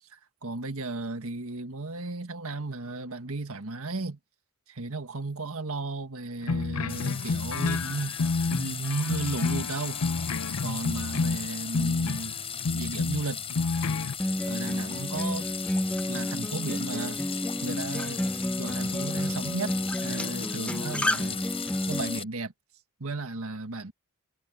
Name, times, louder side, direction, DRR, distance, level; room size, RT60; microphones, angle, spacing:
voice 1, 0.1-4.2 4.7-8.2 8.5-10.4 10.6-12.4 12.7-13.4 14.5-15.5 16.1-17.2 17.6-18.2 18.6-21.4 21.9-22.5 23.0-23.9, right 3 dB, 70° right, 1.8 m, -34 dB
sound 1, 6.4-12.3 12.6-14.1, left 4 dB, 80° left, 0.7 m, -29 dB
sound 2, 6.9-22.2, left 7 dB, 25° left, 7.5 m, -37 dB
Acoustic guitar, 14.2-22.2, left 1 dB, 5° left, 0.4 m, -31 dB
head